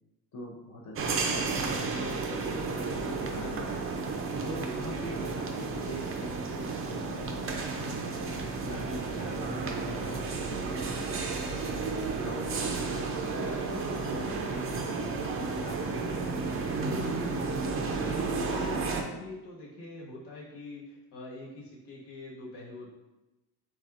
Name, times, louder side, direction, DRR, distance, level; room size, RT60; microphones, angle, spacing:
voice 1, 0.3-3.8 4.4-8.0 8.6-11.1 11.5-13.2 13.7-14.9 15.2-17.0, left 1 dB, 45° left, -3 dB, 0.7 m, -44 dB
sound 1, 1.0-19.0, right 4 dB, 35° right, 0.4 m, -32 dB
voice 2, 17.8-22.9, left 2 dB, 70° left, -5 dB, 1.4 m, -44 dB
4.1 x 3.4 x 2.4 m, 1.0 s
cardioid pair, 125°, 41 cm